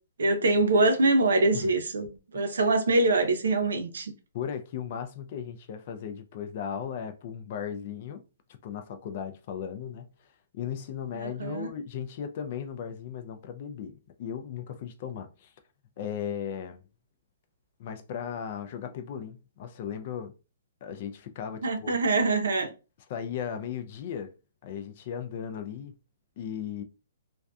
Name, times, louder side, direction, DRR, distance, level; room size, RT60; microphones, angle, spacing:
voice 1, 0.2-2.1 2.3-4.1 11.2-11.7 21.6-22.7, right 2 dB, 85° right, 0.6 m, -24 dB
voice 2, 4.3-8.2 8.5-10.1 10.5-15.5 16.0-16.8 17.8-20.3 20.8-22.0 23.1-24.3 24.6-26.0 26.4-26.8, left 8 dB, 40° left, 0.3 m, -36 dB
2.5 x 2.3 x 2.2 m
hypercardioid pair, 165°, 0 cm